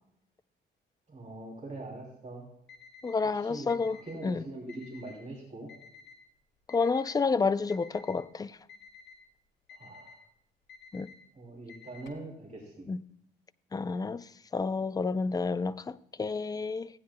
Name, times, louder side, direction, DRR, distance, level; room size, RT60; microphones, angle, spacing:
voice 1, 1.1-2.5 3.3-5.7 9.7-10.1 11.3-12.9, right 2 dB, 35° right, 2.8 m, -43 dB
Alarm, 2.7-3.2 3.7-4.2 4.7-5.2 5.7-6.2 6.7-7.2 7.7-8.2 8.7-9.2 9.7-10.2 10.7-11.2 11.7-12.2, left 6 dB, 65° left, 2.1 m, -52 dB
voice 2, 3.0-4.4 6.7-8.6 10.9-11.1 12.9-13.0 13.7-14.3 14.5-16.9, left 4 dB, 20° left, 0.4 m, -30 dB
15.5 x 9.6 x 2.2 m
cardioid pair, 90°, 20 cm